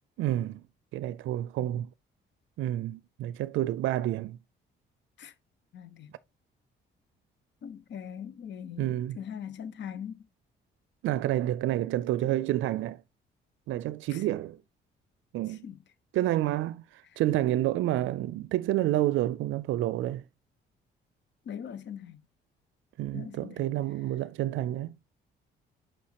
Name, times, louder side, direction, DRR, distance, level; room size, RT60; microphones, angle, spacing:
voice 1, 0.2-0.6 0.9-1.9 2.6-4.4 8.8-9.2 11.0-13.0 13.7-14.6 15.3-15.6 16.1-20.2 23.0-24.9, right 14 dB, 80° right, 0.4 m, -29 dB
voice 2, 5.7-6.1 7.6-10.2 14.1-14.2 15.5-15.8 21.4-22.2 23.1-23.7, left 8 dB, 65° left, 1.1 m, -41 dB
6.9 x 5.7 x 2.9 m
cardioid pair, 90°, 20 cm